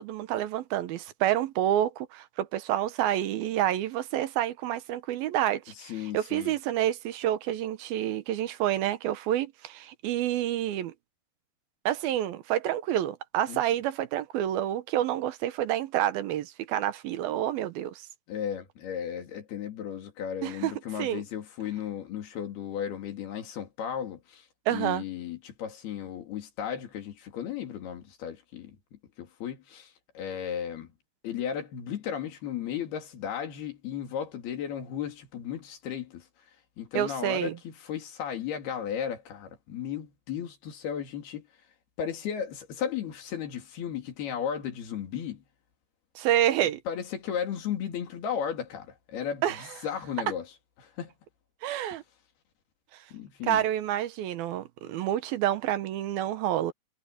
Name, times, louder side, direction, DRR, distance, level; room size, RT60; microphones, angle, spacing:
voice 1, 0.0-10.9 11.9-18.0 20.4-20.7 21.0-21.2 24.7-25.0 36.9-37.6 46.2-46.8 49.4-49.6 51.6-52.0 53.4-56.7, right 12 dB, 75° right, 2.9 m, -28 dB
voice 2, 5.8-6.6 13.5-13.6 18.3-30.9 31.2-36.2 36.8-41.5 42.0-45.4 46.9-50.5 50.8-51.1 53.1-53.6, left 8 dB, 90° left, 4.7 m, -35 dB
omnidirectional pair, 4.4 m